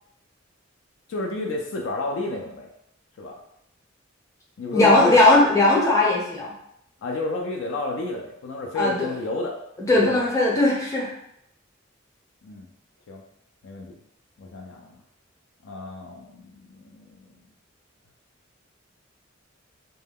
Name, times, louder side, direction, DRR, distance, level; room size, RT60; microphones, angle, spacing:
voice 1, 1.1-2.7 3.2-3.4 4.6-5.3 7.0-9.6 9.9-10.3 12.4-12.7 13.1-13.2 13.6-14.0 14.4-15.0 15.6-17.3, left 2 dB, 65° left, 0 dB, 0.4 m, -31 dB
voice 2, 4.7-6.5 8.8-9.1 9.9-11.1, left 2 dB, 15° left, -4 dB, 0.7 m, -18 dB
2.2 x 2.2 x 3.4 m, 0.76 s
head